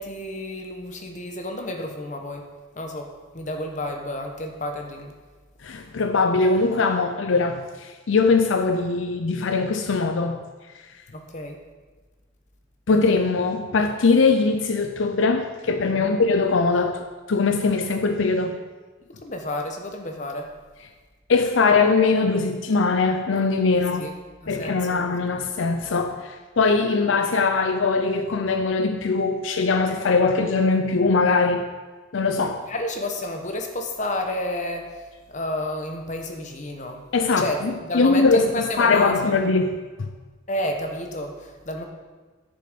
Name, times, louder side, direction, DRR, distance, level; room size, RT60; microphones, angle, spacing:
voice 1, 0.0-2.4 2.7-5.1 11.1-11.6 16.0-16.1 19.2-20.5 24.0-24.1 24.4-25.1 32.7-34.9 35.3-37.0 37.4-37.6 37.8-39.4 40.5-41.8, left 1 dB, 40° left, 1.2 m, -30 dB
voice 2, 5.6-10.4 12.9-18.6 21.3-24.1 24.5-31.7 32.1-32.6 37.1-40.1, left 4 dB, 75° left, 0.6 m, -21 dB
11.0 x 6.8 x 5.2 m
head